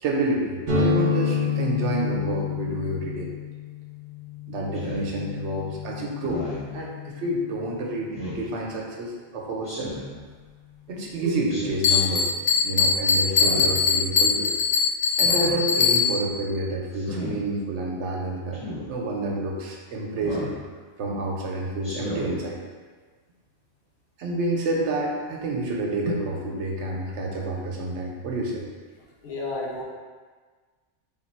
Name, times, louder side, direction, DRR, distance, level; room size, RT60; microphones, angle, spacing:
voice 1, 0.0-3.3 4.5-9.9 10.9-12.3 12.6-14.5 15.2-20.5 21.0-22.6 24.2-28.7, right 2 dB, 75° right, -1 dB, 1.0 m, -29 dB
sound 1, 0.7-8.3, left 5 dB, 50° right, 0.7 m, -29 dB
Speech synthesizer, 4.7-5.1 6.2-6.7 8.1-8.5 9.6-10.2 11.5-12.0 13.3-13.8 15.1-15.6 16.9-17.3 18.5-18.9 20.2-20.6 21.8-22.3, left 1 dB, 30° left, 1.1 m, -35 dB
Bell, 11.8-16.4, left 5 dB, 50° left, 0.5 m, -22 dB
voice 2, 29.2-29.8, left 2 dB, 70° left, -2 dB, 0.9 m, -31 dB
3.5 x 2.4 x 4.3 m, 1.5 s
omnidirectional pair, 1.2 m